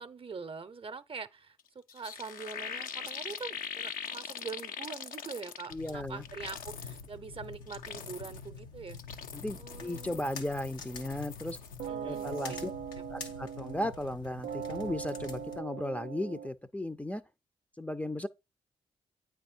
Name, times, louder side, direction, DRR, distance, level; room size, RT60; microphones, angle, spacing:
voice 1, 0.0-9.0 9.6-10.2 11.9-12.6, right 5 dB, 40° right, 0.7 m, -44 dB
sound 1, 1.6-1.7 1.9-5.9 6.2-7.1 7.5-8.5 8.9-11.9 12.1-12.5, left 7 dB, 70° left, 0.6 m, -42 dB
sound 2, 5.7-15.6, left 4 dB, 90° left, 1.0 m, -47 dB
voice 2, 5.7-6.2 9.3-11.6 12.0-12.7 13.1-17.2 17.8-18.3, left 1 dB, 10° left, 0.5 m, -36 dB
sound 3, 11.8-14.1 14.4-16.5, right 8 dB, 75° right, 0.5 m, -40 dB
8.9 x 3.5 x 4.3 m
hypercardioid pair, 40°, 15 cm